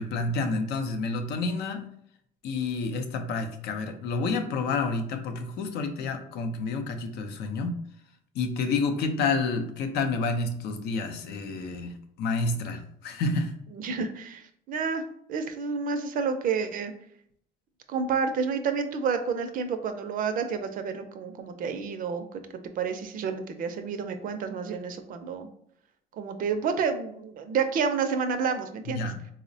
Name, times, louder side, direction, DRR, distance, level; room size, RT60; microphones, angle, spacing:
voice 1, 0.0-1.9 2.4-7.7 8.3-13.5 28.9-29.2, left 3 dB, 80° left, 6 dB, 0.5 m, -29 dB
voice 2, 13.7-15.0 15.3-16.9 17.9-22.4 22.8-25.5 26.1-29.1, right 5 dB, 55° right, 8 dB, 0.4 m, -29 dB
3.9 x 2.0 x 2.6 m, 0.68 s
cardioid pair, 110°, 17 cm